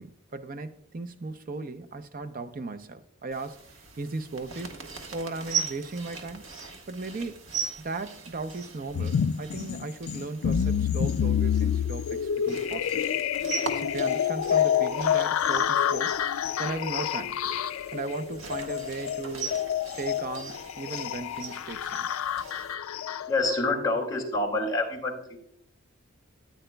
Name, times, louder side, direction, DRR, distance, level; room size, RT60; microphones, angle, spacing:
voice 1, 0.0-3.6 4.0-4.8 5.1-6.5 6.9-7.4 7.8-13.2 13.7-16.2 16.6-17.4 17.9-19.5 20.0-22.1, right 3 dB, 40° right, 0.5 m, -37 dB
sound 1, 3.3-22.7, right 6 dB, 70° right, 1.3 m, -40 dB
sound 2, 8.9-23.6, left 8 dB, 75° left, 0.3 m, -28 dB
voice 2, 23.3-25.4, left 2 dB, 20° left, 2.3 m, -27 dB
14.0 x 9.1 x 2.2 m
head